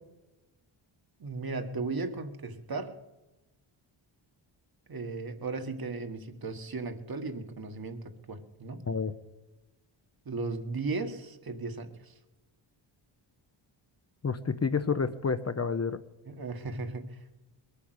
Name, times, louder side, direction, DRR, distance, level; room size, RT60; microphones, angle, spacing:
voice 1, 1.2-3.0 4.9-8.9 10.3-12.1 16.2-17.4, right 3 dB, 45° right, 6 dB, 1.6 m, -36 dB
voice 2, 14.2-16.0, left 5 dB, 30° left, 10 dB, 0.7 m, -29 dB
21.5 x 8.6 x 7.9 m, 1.1 s
cardioid pair, 95°, 48 cm